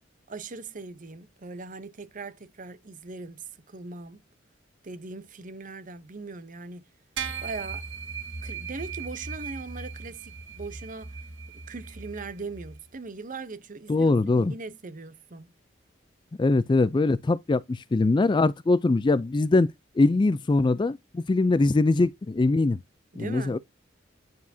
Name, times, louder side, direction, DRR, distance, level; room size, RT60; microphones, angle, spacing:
voice 1, 0.3-4.2 4.8-6.9 7.4-7.8 8.4-11.2 11.5-15.5 23.1-23.6, right 3 dB, 45° right, 0.7 m, -40 dB
sound 1, 7.2-12.8, right 5 dB, 65° right, 1.2 m, -38 dB
voice 2, 13.9-14.5 16.4-19.7 20.0-22.8 23.2-23.6, left 3 dB, 25° left, 0.3 m, -22 dB
9.3 x 4.8 x 2.7 m
head